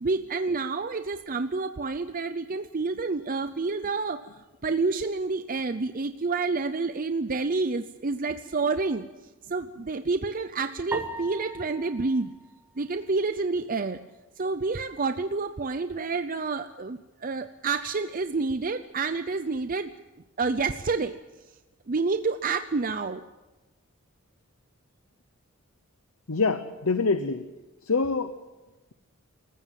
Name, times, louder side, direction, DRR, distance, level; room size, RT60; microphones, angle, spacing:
voice 1, 0.0-9.1 9.5-12.3 12.8-14.0 14.4-19.9 20.4-21.2 21.9-23.2, right 4 dB, 40° right, 10 dB, 0.6 m, -29 dB
sound 1, 10.9-13.4, right 2 dB, 10° right, 1.7 m, -39 dB
voice 2, 26.3-27.5 27.8-28.4, left 4 dB, 80° left, 10 dB, 0.9 m, -25 dB
27.0 x 15.0 x 7.5 m, 1.1 s
head